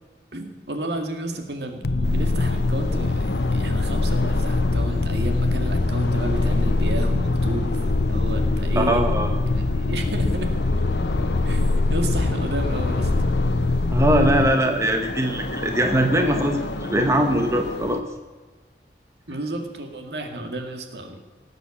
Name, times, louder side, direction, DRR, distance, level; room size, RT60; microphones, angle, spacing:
voice 1, 0.3-9.1 9.5-10.5 11.4-13.1 19.3-21.2, right 1 dB, 75° right, 4 dB, 2.0 m, -32 dB
sound 1, 1.8-14.5, left 2 dB, 65° left, 0.6 m, -23 dB
sound 2, 2.0-18.0, left 2 dB, 85° left, 1.2 m, -33 dB
voice 2, 8.8-9.3 13.9-18.0, right 1 dB, 15° right, 4 dB, 1.1 m, -21 dB
18.0 x 8.1 x 7.1 m, 1.3 s
head